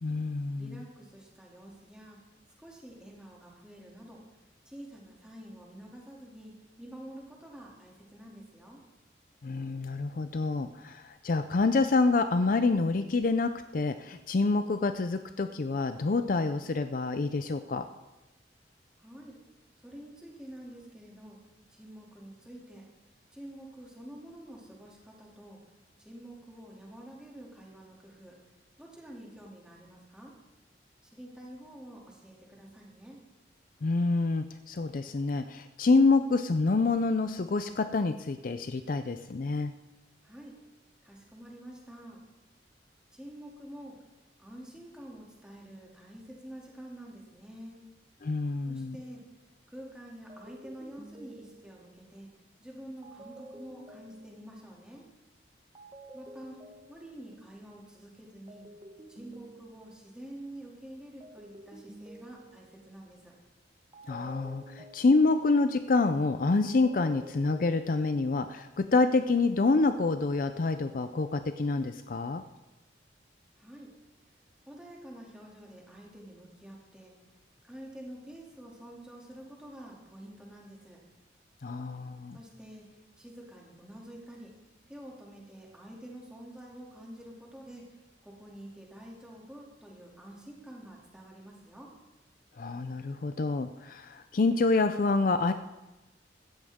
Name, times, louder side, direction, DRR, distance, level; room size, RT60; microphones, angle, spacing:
voice 1, 0.0-0.8 9.4-17.9 33.8-39.7 48.2-49.0 64.1-72.4 81.6-82.4 92.6-95.5, left 3 dB, 50° left, 10 dB, 0.4 m, -27 dB
voice 2, 0.6-2.2 2.6-4.2 4.7-6.5 6.8-8.8 19.0-19.4 19.8-21.4 21.7-22.8 23.3-25.6 26.0-28.4 28.8-30.3 31.0-33.2 40.2-40.5 41.0-42.2 43.1-44.0 44.4-47.8 48.7-49.2 49.7-52.3 52.6-55.1 56.1-56.6 56.9-58.7 59.1-63.3 73.6-73.9 74.7-77.1 77.7-81.0 82.3-84.5 84.9-87.9 88.2-91.9, right 1 dB, 5° right, -3 dB, 2.6 m, -48 dB
sound 1, 49.0-49.3 50.3-52.0 53.0-54.7 55.7-57.4 58.5-60.2 61.2-62.9 63.9-65.6 66.7-68.0, right 1 dB, 25° right, 1.4 m, -51 dB
16.0 x 13.5 x 3.6 m, 1.1 s
head